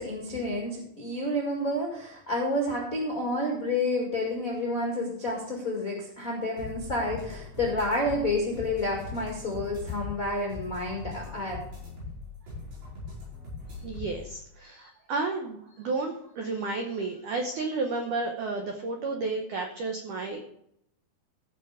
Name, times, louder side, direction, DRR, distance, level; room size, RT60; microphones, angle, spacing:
voice 1, 0.0-11.6, left 1 dB, 75° left, -1 dB, 0.7 m, -30 dB
sound 1, 6.6-14.3, left 3 dB, 70° right, 7.7 m, -41 dB
voice 2, 13.8-20.4, right 3 dB, 90° right, 4 dB, 1.7 m, -32 dB
15.0 x 5.6 x 5.0 m, 0.75 s
omnidirectional pair, 5.2 m